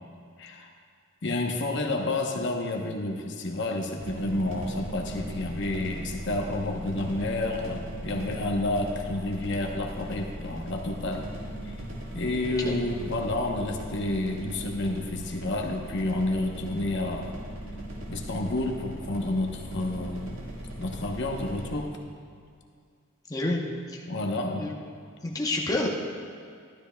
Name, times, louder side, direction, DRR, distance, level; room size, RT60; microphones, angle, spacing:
voice 1, 0.4-0.7 1.2-11.3 11.6-11.8 12.1-17.4 18.1-20.4 20.8-22.0 24.1-24.7, left 2 dB, 55° left, 2 dB, 0.9 m, -30 dB
sound 1, 4.0-21.8, equal, 75° right, 1.6 m, -39 dB
voice 2, 23.3-23.6 23.9-24.0 24.6-24.7 25.2-25.9, left 2 dB, 15° left, -2 dB, 0.8 m, -28 dB
12.5 x 12.0 x 2.2 m, 2.2 s
head